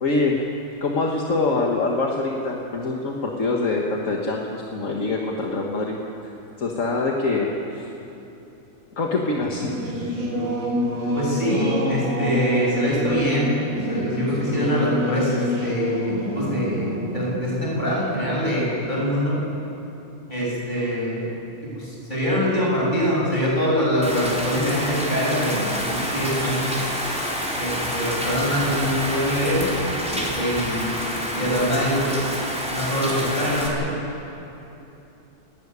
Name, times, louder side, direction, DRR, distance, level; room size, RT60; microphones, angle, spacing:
voice 1, 0.0-0.4 0.8-6.0 6.6-7.5 7.8-7.9 9.0-9.7, left 3 dB, 65° left, -1 dB, 2.0 m, -24 dB
Singing / Musical instrument, 9.3-19.4, equal, 70° right, 4.0 m, -28 dB
voice 2, 11.1-13.5 13.9-15.9 16.3-19.3 20.3-21.3 21.7-26.7 27.5-29.6 30.0-32.3 32.7-33.8, equal, 35° left, -6 dB, 8.2 m, -24 dB
Rain, 24.0-33.7, equal, 5° right, 4.4 m, -28 dB
30.0 x 12.0 x 9.8 m, 2.9 s
omnidirectional pair, 1.4 m